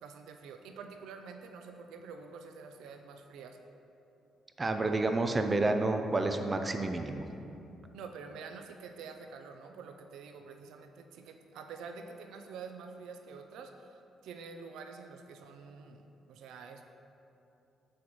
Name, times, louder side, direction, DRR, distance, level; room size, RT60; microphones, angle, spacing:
voice 1, 0.0-3.6 7.9-16.8, right 5 dB, 85° right, 6 dB, 0.4 m, -47 dB
voice 2, 4.6-7.3, right 2 dB, 25° right, 6 dB, 0.5 m, -29 dB
7.2 x 6.2 x 3.0 m, 2.8 s
cardioid pair, 90°, 0 cm